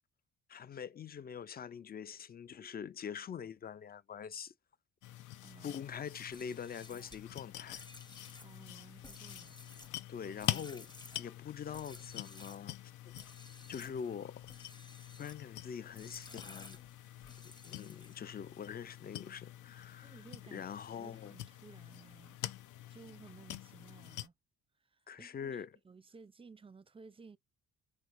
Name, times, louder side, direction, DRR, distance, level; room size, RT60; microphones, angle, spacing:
voice 1, 0.5-4.5 5.6-7.8 10.1-10.9 11.2-12.8 13.0-13.1 13.7-14.5 15.2-16.8 17.6-20.3 20.5-21.4 22.9-23.0 25.1-25.8, left 7 dB, 30° left, 0.4 m, -44 dB
sound 1, 5.0-24.3, left 13 dB, 80° left, 0.7 m, -46 dB
voice 2, 5.4-5.8 8.4-9.6 20.0-20.6 20.9-22.4 22.9-24.3 24.9-25.5 25.8-27.4, right 4 dB, 20° right, 0.5 m, -56 dB
sound 2, 6.2-12.7 13.1-14.0 14.4-15.4 15.9-18.4, left 2 dB, 15° left, 1.0 m, -55 dB
4.5 x 4.5 x 2.5 m
cardioid pair, 90°, 30 cm